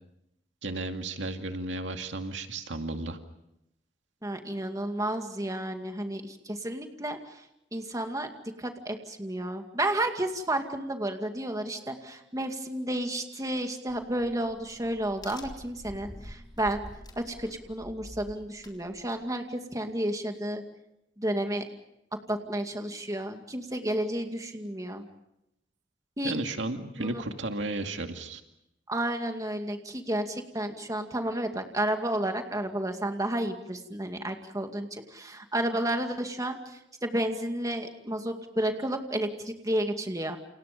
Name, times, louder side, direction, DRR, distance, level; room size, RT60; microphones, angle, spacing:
voice 1, 0.6-3.2 26.2-28.4, right 2 dB, 80° right, 5 dB, 2.3 m, -33 dB
voice 2, 4.2-7.4 7.7-8.3 8.6-16.8 17.2-20.6 21.2-21.6 22.3-25.0 26.2-26.4 27.0-27.2 28.9-40.4, right 1 dB, 20° right, 5 dB, 2.3 m, -31 dB
Crack, 13.9-19.3, left 1 dB, 25° left, 3.9 m, -47 dB
29.5 x 28.5 x 5.3 m, 0.83 s
head